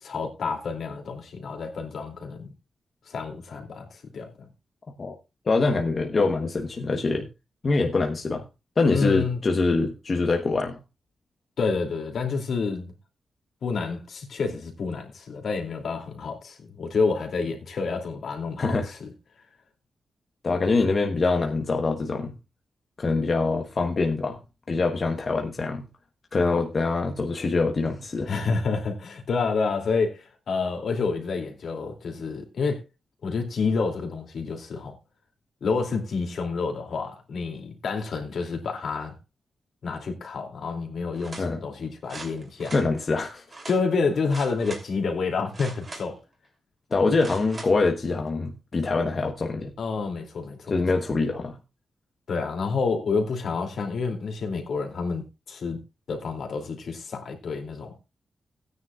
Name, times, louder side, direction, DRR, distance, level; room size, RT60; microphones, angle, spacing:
voice 1, 0.0-2.5 3.1-4.5 8.9-9.4 11.6-12.9 13.6-19.1 28.3-32.8 33.2-34.9 35.6-39.2 39.8-42.7 43.7-46.2 49.8-50.8 52.3-55.8 56.1-57.9, left 4 dB, 70° left, 2.8 m, -29 dB
voice 2, 5.5-7.3 7.6-8.5 8.8-10.8 18.6-18.9 20.4-22.3 23.0-24.4 24.7-25.9 26.3-28.3 41.4-41.6 42.7-43.4 46.9-49.7 50.7-51.6, left 3 dB, 40° left, 1.1 m, -24 dB
sound 1, 41.1-41.5 42.1-42.9 43.5-43.8 44.3-44.9 45.5-46.2 47.2-47.7 48.3-48.4, right 3 dB, 35° right, 3.1 m, -41 dB
17.5 x 9.7 x 2.4 m
wide cardioid pair, 135°, 0 cm